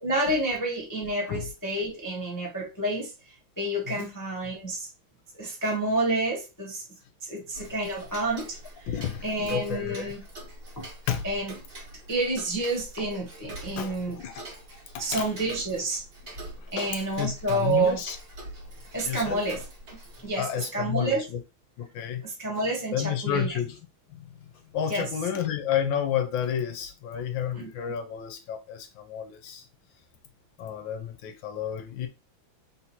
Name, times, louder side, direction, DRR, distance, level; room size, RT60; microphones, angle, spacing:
voice 1, 0.0-3.1 3.6-4.9 5.4-6.8 7.3-8.9 9.2-10.2 10.8-10.9 11.2-11.5 12.1-14.2 15.0-16.0 16.7-18.0 18.9-19.6 20.2-21.2 22.2-23.6 24.9-25.1 27.5-27.7, right 2 dB, 20° left, 0.5 m, -29 dB
Tick-tock, 7.5-20.3, right 1 dB, 50° right, 1.9 m, -44 dB
voice 2, 8.9-10.1 11.1-11.2 13.0-13.1 13.8-14.4 14.9-15.3 16.8-18.2 19.0-19.4 20.4-21.4 21.8-22.2 22.9-23.8 24.1-24.3 24.7-29.6 30.6-32.1, left 9 dB, 75° left, 1.3 m, -31 dB
3.8 x 2.8 x 4.2 m
omnidirectional pair, 2.3 m